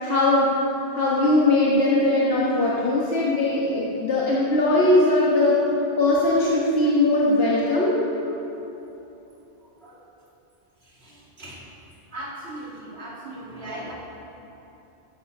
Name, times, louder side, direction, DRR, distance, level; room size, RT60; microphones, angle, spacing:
voice 1, 0.0-0.5 0.9-5.6 6.0-8.0, left 2 dB, 70° left, -6 dB, 1.6 m, -20 dB
voice 2, 12.1-12.7 13.0-13.9, right 1 dB, 75° right, -5 dB, 2.5 m, -36 dB
13.5 x 7.5 x 5.4 m, 2.9 s
omnidirectional pair, 1.1 m